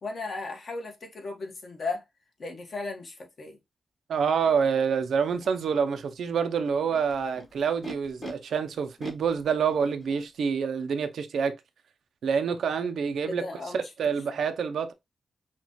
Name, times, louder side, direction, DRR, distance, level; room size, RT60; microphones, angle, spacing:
voice 1, 0.0-2.0 2.4-3.6 13.2-13.9 14.4-14.5, left 3 dB, 55° left, 1.4 m, -36 dB
voice 2, 4.1-11.6 12.2-13.4 13.7-14.9, right 6 dB, 85° right, 0.6 m, -27 dB
Animal, 4.4-4.5 5.3-5.8 6.6-8.3 9.0-10.2, left 1 dB, 35° left, 1.3 m, -43 dB
5.8 x 2.4 x 3.0 m
wide cardioid pair, 105°, 0 cm